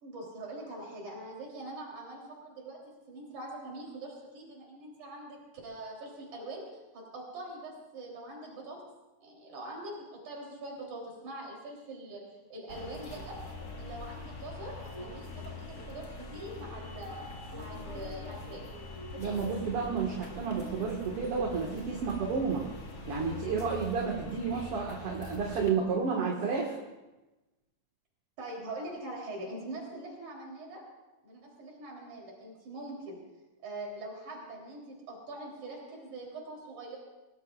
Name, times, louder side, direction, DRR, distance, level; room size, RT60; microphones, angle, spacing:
voice 1, 0.0-2.8 3.1-6.6 6.9-8.8 9.2-13.4 13.8-18.6 22.2-22.3 28.4-30.8 31.2-33.2 33.6-37.0, right 2 dB, 85° right, -2 dB, 5.0 m, -43 dB
sound 1, 12.7-25.7, left 2 dB, 35° left, 2.1 m, -43 dB
voice 2, 19.2-22.7 23.1-26.8, right 5 dB, 55° right, -1 dB, 2.6 m, -31 dB
27.0 x 19.0 x 2.5 m, 1.0 s
omnidirectional pair, 3.3 m